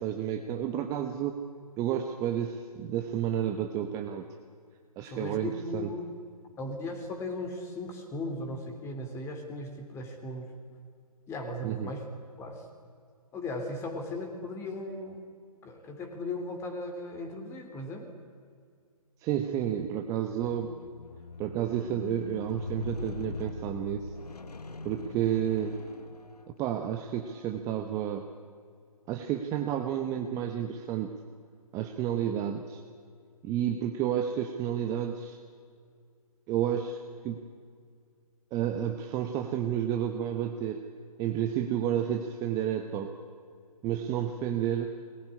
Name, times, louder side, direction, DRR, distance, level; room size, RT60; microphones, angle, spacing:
voice 1, 0.0-1.4 1.8-4.2 5.0-5.9 11.6-11.9 19.2-20.7 21.4-24.1 24.8-25.7 26.5-28.3 29.1-31.1 31.7-32.8 33.4-35.4 36.5-37.4 38.5-40.9 41.2-43.1 43.8-45.0, right 10 dB, 15° right, 5 dB, 1.0 m, -31 dB
voice 2, 5.0-6.1 6.6-10.5 11.3-12.1 12.4-12.7 13.3-15.3 15.6-18.1, left 2 dB, 15° left, 5 dB, 3.0 m, -37 dB
Squeak, 20.4-26.8 27.5-27.7, left 3 dB, 85° left, 1.3 m, -42 dB
22.0 x 20.0 x 9.9 m, 2.1 s
figure-of-eight pair, 145°, 20 cm